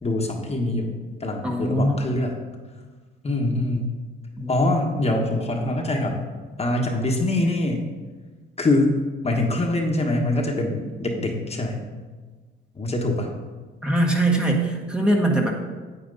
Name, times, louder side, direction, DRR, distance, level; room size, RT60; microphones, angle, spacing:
voice 1, 0.0-2.4 3.2-3.9 4.5-6.2 6.6-7.8 8.6-8.9 9.2-11.8 12.7-13.3, left 2 dB, 30° left, 1 dB, 1.4 m, -24 dB
voice 2, 1.4-2.1 4.4-4.9 13.8-15.5, right 1 dB, 5° right, -1 dB, 1.3 m, -22 dB
9.1 x 8.7 x 4.0 m, 1.4 s
cardioid pair, 90°, 20 cm